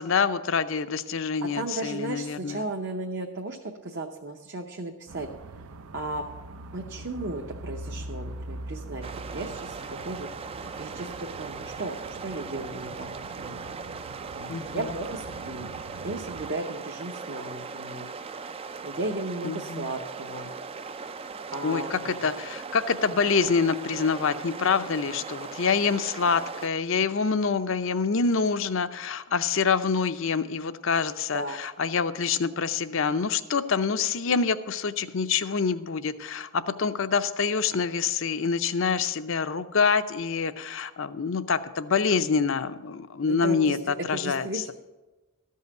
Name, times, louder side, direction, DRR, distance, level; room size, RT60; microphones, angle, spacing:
voice 1, 0.0-2.6 14.5-14.9 19.4-19.9 21.6-44.7, left 5 dB, 60° left, 12 dB, 0.6 m, -26 dB
voice 2, 1.5-3.6 3.8-5.3 5.9-6.2 6.7-9.0 9.3-10.3 10.8-13.1 13.4-13.6 14.3-15.7 16.0-18.1 18.8-20.5 21.5-22.2 31.3-31.6 43.3-44.7, right 2 dB, 55° right, 2 dB, 0.8 m, -35 dB
sound 1, 5.1-16.6, right 2 dB, 75° right, 0.5 m, -42 dB
sound 2, 9.0-26.7, right 5 dB, 25° right, 0.3 m, -39 dB
14.0 x 5.6 x 7.9 m, 1.1 s
head